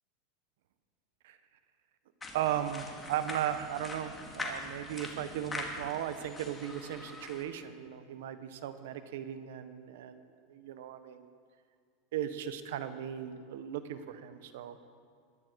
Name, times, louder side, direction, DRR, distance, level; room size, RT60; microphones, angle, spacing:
sound 1, 2.2-7.4, left 2 dB, 15° left, 2.4 m, -43 dB
voice 1, 2.3-11.3 12.1-14.8, right 10 dB, 80° right, 11 dB, 1.1 m, -37 dB
22.0 x 10.5 x 4.7 m, 2.1 s
supercardioid pair, 120°, 0 cm